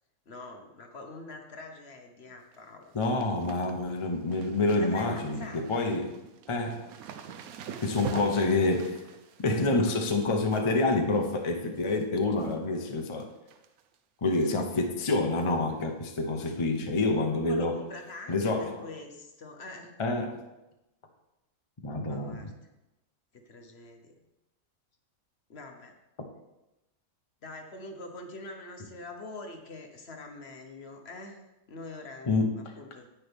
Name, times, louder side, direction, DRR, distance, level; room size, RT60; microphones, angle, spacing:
voice 1, 0.3-3.0 4.8-5.9 8.3-8.4 14.4-14.6 17.5-20.0 22.1-22.5 23.3-24.1 25.5-25.9 27.4-33.1, left 2 dB, 50° left, 4 dB, 1.2 m, -44 dB
sound 1, 2.2-2.6 2.8-12.0 12.4-12.8 13.1-14.0 14.3-14.4 15.4-15.6 15.9-16.0 16.4-16.5 18.0-18.1 18.9-19.0, right 7 dB, 85° right, 1.1 m, -46 dB
voice 2, 2.9-6.1 6.5-6.9 7.8-9.0 9.4-13.3 14.2-17.8 18.3-18.8 20.0-20.5 21.8-22.3 32.3-32.5, left 2 dB, 25° left, 3 dB, 0.7 m, -27 dB
10.0 x 8.6 x 3.5 m, 0.97 s
omnidirectional pair, 1.5 m